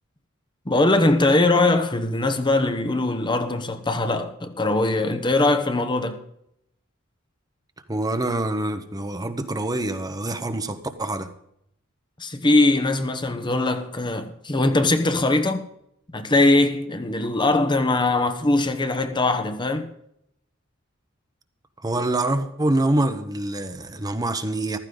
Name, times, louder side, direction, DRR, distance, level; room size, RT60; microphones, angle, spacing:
voice 1, 0.7-6.2 12.2-15.6 16.1-19.9, left 2 dB, 25° left, 1.0 m, -21 dB
voice 2, 7.9-11.3 21.8-24.8, right 2 dB, 20° right, 1.0 m, -25 dB
15.0 x 13.5 x 4.0 m
head